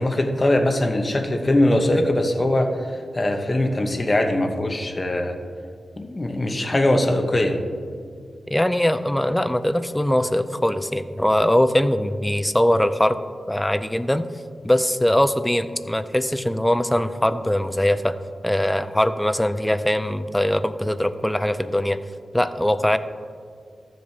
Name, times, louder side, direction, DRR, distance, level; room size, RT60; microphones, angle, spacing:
voice 1, 0.0-5.4 6.0-7.6, left 1 dB, 30° left, 4 dB, 0.9 m, -21 dB
voice 2, 8.5-13.2 13.5-14.3 14.6-18.2 18.4-22.0 22.3-23.0, left 1 dB, 10° left, 11 dB, 0.4 m, -21 dB
13.5 x 7.5 x 2.8 m, 2.2 s
wide cardioid pair, 90°, 0 cm